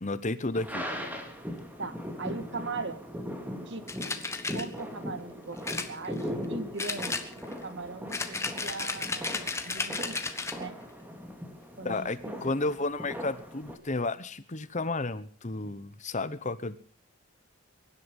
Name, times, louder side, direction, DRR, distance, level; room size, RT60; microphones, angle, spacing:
voice 1, 0.0-0.9 11.8-16.8, left 2 dB, 35° left, 14 dB, 1.0 m, -32 dB
sound 1, 0.5-13.8, equal, 10° right, 2.6 m, -39 dB
voice 2, 1.8-3.0 3.6-3.8 4.5-7.2 7.6-9.3 9.6-10.2 10.6-10.7 11.8-12.5, right 3 dB, 55° right, 11 dB, 1.7 m, -39 dB
sound 2, 3.9-4.6 5.6-6.4 6.8-7.6 8.1-10.6, left 3 dB, 15° left, 1.4 m, -33 dB
23.5 x 11.5 x 5.4 m, 0.43 s
head